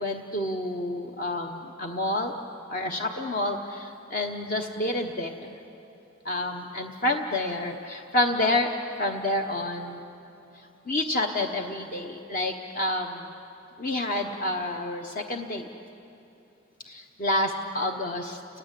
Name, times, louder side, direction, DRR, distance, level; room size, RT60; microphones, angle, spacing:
voice 1, 0.0-2.3 2.7-5.5 6.2-10.0 10.9-13.3 13.8-15.7 16.8-18.4, left 1 dB, 40° left, 3 dB, 1.1 m, -29 dB
29.5 x 20.0 x 8.4 m, 2.7 s
head